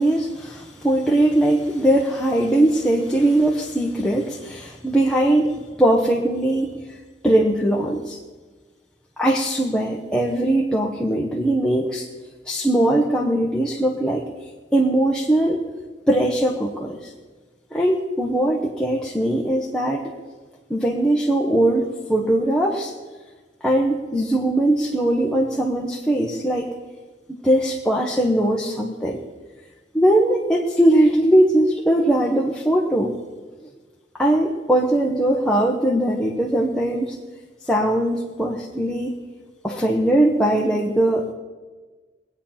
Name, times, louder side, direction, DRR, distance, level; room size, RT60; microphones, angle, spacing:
voice 1, 0.0-6.8 7.2-8.2 9.2-12.1 12.5-14.3 14.7-15.7 16.1-17.1 17.7-20.1 20.7-22.9 23.6-26.7 27.3-29.2 29.9-33.1 34.1-37.2 37.7-39.2 39.6-41.3, right 1 dB, 5° left, -3 dB, 1.1 m, -20 dB
21.5 x 8.8 x 5.7 m, 1.4 s
head